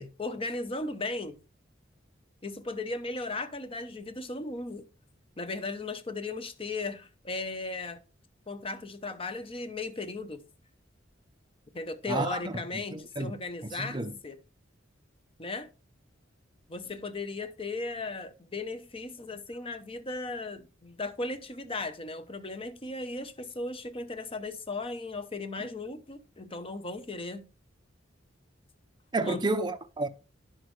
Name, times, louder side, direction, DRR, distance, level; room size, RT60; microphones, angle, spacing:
voice 1, 0.0-1.4 2.4-4.9 5.4-8.0 8.5-10.4 11.7-14.4 15.4-15.7 16.7-27.5 29.2-29.5, left 3 dB, 30° left, 0.8 m, -36 dB
voice 2, 12.1-12.5 12.9-13.3 13.8-14.1 29.1-30.1, right 2 dB, 25° right, 0.6 m, -30 dB
10.5 x 6.2 x 3.2 m
head